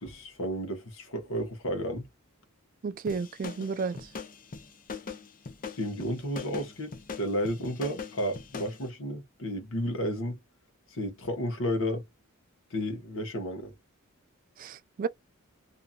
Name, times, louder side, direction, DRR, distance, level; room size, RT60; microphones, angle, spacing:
voice 1, 0.0-2.1 5.8-10.4 11.0-12.0 12.7-13.7, equal, 65° left, 1.0 m, -32 dB
voice 2, 2.8-4.0 14.6-15.1, right 5 dB, 40° right, 0.3 m, -32 dB
sound 1, 3.1-8.8, left 5 dB, 40° left, 0.6 m, -41 dB
2.7 x 2.5 x 2.2 m
head